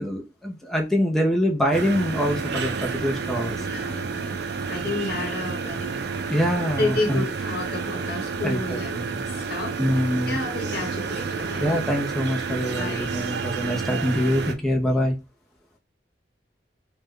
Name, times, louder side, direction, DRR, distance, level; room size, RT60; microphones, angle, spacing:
voice 1, 0.0-3.7 6.3-7.2 8.4-8.6 8.9-9.1 9.8-10.4 11.6-15.2, equal, ahead, 0.4 m, -24 dB
sound 1, 1.7-14.5, right 5 dB, 65° right, 0.5 m, -30 dB
voice 2, 3.5-6.0 6.3-6.4 6.8-9.8 10.3-11.7 12.7-13.1 14.8-14.9, left 2 dB, 60° left, 1.1 m, -31 dB
3.2 x 2.1 x 3.4 m
head